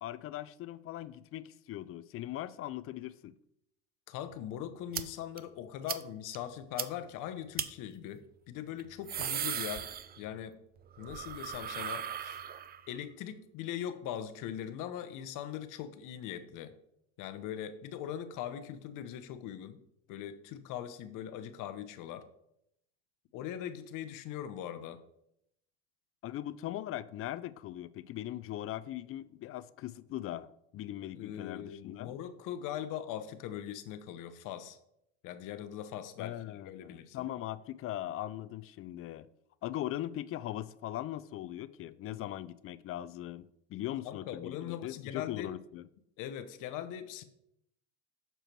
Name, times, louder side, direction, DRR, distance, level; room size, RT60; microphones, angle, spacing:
voice 1, 0.0-3.3 26.2-32.1 36.2-39.3 39.6-45.8, left 13 dB, 40° left, 0.4 m, -40 dB
voice 2, 4.1-9.9 10.2-10.6 11.0-12.4 12.9-16.7 17.2-19.8 20.1-22.3 23.3-25.0 31.2-34.8 35.2-37.3 44.0-45.5 46.2-47.2, left 10 dB, 60° left, 0.8 m, -41 dB
sound 1, 4.9-5.0 5.4-5.5 5.9-6.0 6.3-6.4 6.8-6.9 7.6-7.7 8.8-10.5 10.8-12.9, right 9 dB, 30° right, 0.4 m, -37 dB
6.7 x 4.5 x 4.5 m
supercardioid pair, 85°, 35 cm